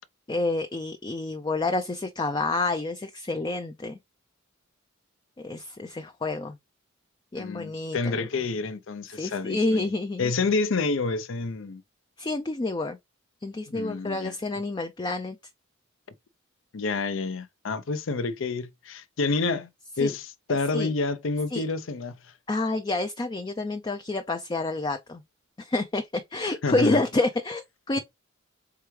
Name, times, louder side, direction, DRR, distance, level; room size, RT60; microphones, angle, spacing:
voice 1, 0.3-4.0 5.4-6.6 7.3-8.3 9.1-10.3 12.2-13.0 13.4-15.4 20.0-20.1 20.7-20.9 21.5-21.6 22.5-25.2 25.6-28.0, left 2 dB, 20° left, 0.4 m, -28 dB
voice 2, 7.4-9.9 10.2-11.8 13.7-14.3 16.7-19.7 20.0-22.1 26.4-27.0, left 3 dB, 70° left, 0.6 m, -28 dB
4.7 x 3.4 x 3.2 m
head